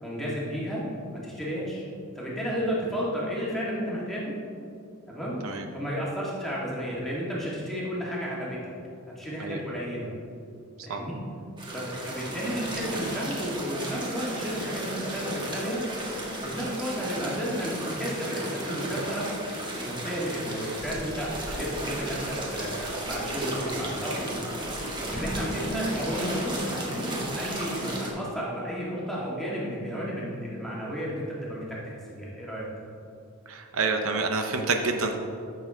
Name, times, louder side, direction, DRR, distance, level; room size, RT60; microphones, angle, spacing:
voice 1, 0.0-0.8 1.1-1.8 2.2-4.3 5.1-5.3 5.7-8.6 9.2-10.1 10.8-11.2 11.7-15.8 16.4-19.3 19.7-24.4 25.1-32.7, equal, ahead, -6 dB, 1.9 m, -32 dB
sound 1, 11.6-28.1, right 1 dB, 20° right, 1.4 m, -34 dB
voice 2, 33.5-35.2, right 4 dB, 70° right, 5 dB, 0.7 m, -28 dB
13.5 x 6.5 x 3.7 m, 2.6 s
head